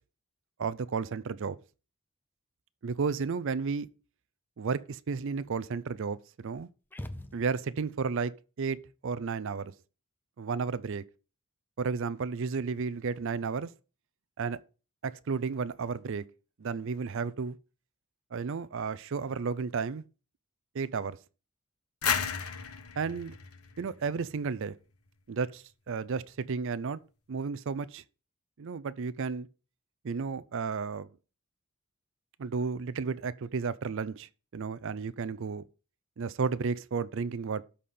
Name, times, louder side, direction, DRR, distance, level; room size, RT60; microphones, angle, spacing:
voice 1, 0.6-1.6 2.8-3.9 4.6-6.7 7.3-8.8 9.0-9.7 10.4-11.0 11.8-13.7 14.4-14.6 15.0-16.2 16.6-17.6 18.3-20.0 20.7-21.2 23.0-23.4 23.8-24.7 25.3-27.0 27.3-28.0 28.6-29.5 30.0-31.1 32.4-35.6 36.2-37.6, right 5 dB, 60° right, 0.5 m, -33 dB
sound 1, 6.9-7.9, left 1 dB, 10° left, 0.6 m, -42 dB
sound 2, 22.0-24.7, left 7 dB, 80° left, 1.2 m, -34 dB
12.5 x 4.3 x 5.3 m
head